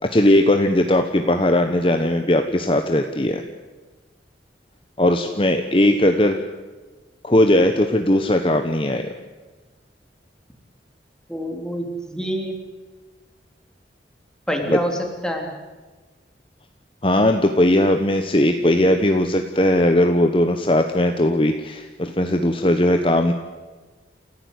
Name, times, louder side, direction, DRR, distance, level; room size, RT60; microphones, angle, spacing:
voice 1, 0.1-3.4 5.0-6.4 7.2-9.1 14.7-14.8 17.0-23.3, left 1 dB, 30° left, 6 dB, 1.1 m, -18 dB
voice 2, 11.3-12.5 14.5-15.0 15.2-15.5, equal, 5° left, 2 dB, 3.4 m, -26 dB
29.0 x 15.0 x 8.3 m, 1.3 s
head